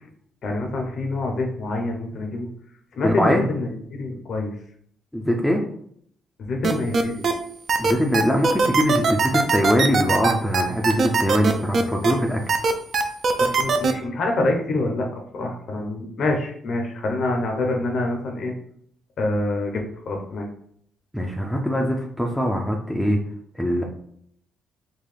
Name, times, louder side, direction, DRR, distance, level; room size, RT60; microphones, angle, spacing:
voice 1, 0.4-2.5 2.9-4.6 6.4-7.2 13.4-15.1 15.3-18.5 19.2-20.5, left 2 dB, 60° left, 2 dB, 0.7 m, -26 dB
voice 2, 3.0-3.4 5.1-5.6 7.8-12.5 21.1-23.2 23.5-23.8, equal, 5° left, 1 dB, 0.4 m, -22 dB
sound 1, 6.6-7.3 7.7-12.1 12.5-13.9, right 4 dB, 55° right, 0.4 m, -20 dB
3.8 x 2.3 x 3.2 m, 0.65 s
cardioid pair, 90°, 0 cm